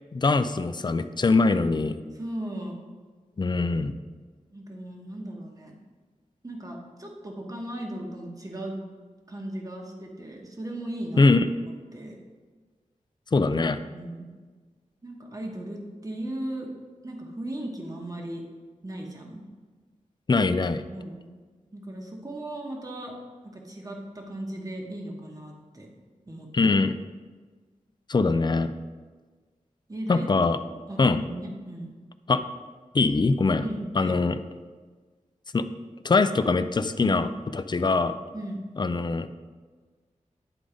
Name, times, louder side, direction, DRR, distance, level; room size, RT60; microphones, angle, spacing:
voice 1, 0.1-1.9 3.4-3.9 11.2-11.4 13.3-13.8 20.3-20.8 26.5-26.9 28.1-28.7 30.1-30.6 31.0-31.2 32.3-32.4 32.9-33.6 34.0-34.4 35.5-35.6 36.0-37.3 37.5-38.1 38.8-39.3, left 3 dB, 35° left, 11 dB, 0.4 m, -22 dB
voice 2, 2.1-2.7 4.5-5.7 6.4-8.8 9.3-11.3 11.6-12.2 13.9-14.3 15.0-16.7 17.0-18.4 18.8-19.4 20.9-21.2 21.7-23.1 23.4-25.9 26.3-26.5 29.9-30.3 30.6-31.9 33.6-34.4 37.0-37.3 38.3-38.6, right 1 dB, 25° right, 0 dB, 1.2 m, -37 dB
9.9 x 3.9 x 5.0 m, 1.4 s
wide cardioid pair, 95°, 13 cm